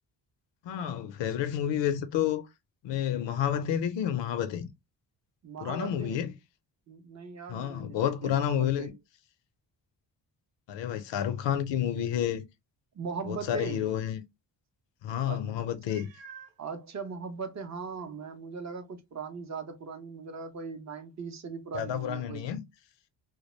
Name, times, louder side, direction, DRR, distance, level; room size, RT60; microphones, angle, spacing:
voice 1, 0.6-2.5 2.8-4.7 5.6-6.3 7.5-8.9 10.7-12.4 13.2-14.2 15.0-16.1 21.7-22.6, left 10 dB, 80° left, 0.6 m, -30 dB
voice 2, 5.4-6.2 6.9-8.9 12.9-13.9 15.3-15.5 16.6-22.5, right 5 dB, 40° right, 0.5 m, -39 dB
Meow, 15.9-16.6 17.4-17.5 18.0-18.1 22.0-22.1, right 7 dB, 90° right, 0.6 m, -49 dB
2.2 x 2.0 x 3.0 m
cardioid pair, 115°, 43 cm